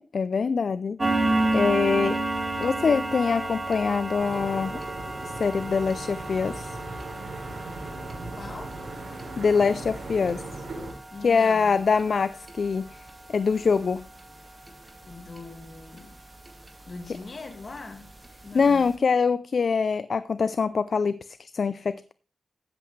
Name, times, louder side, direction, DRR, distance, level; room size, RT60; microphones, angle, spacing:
voice 1, 0.1-1.0 1.5-2.2 2.6-4.8 5.2-6.8 9.4-10.4 11.2-14.0 18.5-22.1, left 5 dB, 60° left, 0.4 m, -24 dB
sound 1, 1.0-16.1 16.5-16.7 17.1-17.2 17.7-17.8 18.2-18.3 18.6-18.8, right 2 dB, 25° right, 2.4 m, -32 dB
sound 2, 4.2-10.9, right 2 dB, 75° right, 5.5 m, -38 dB
voice 2, 8.4-8.8 11.1-11.8 15.0-16.2 16.9-18.1 18.4-18.8, left 3 dB, 45° left, 2.0 m, -41 dB
14.0 x 7.8 x 3.2 m
cardioid pair, 80°, 0 cm